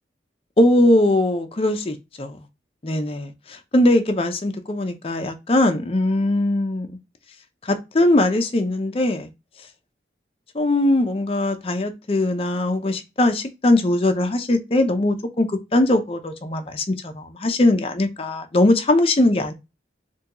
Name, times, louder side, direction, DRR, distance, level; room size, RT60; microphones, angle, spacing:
voice 1, 0.6-2.4 2.8-7.0 7.6-9.3 10.5-19.5, left 1 dB, 30° left, 0.5 m, -20 dB
3.5 x 2.2 x 2.8 m
head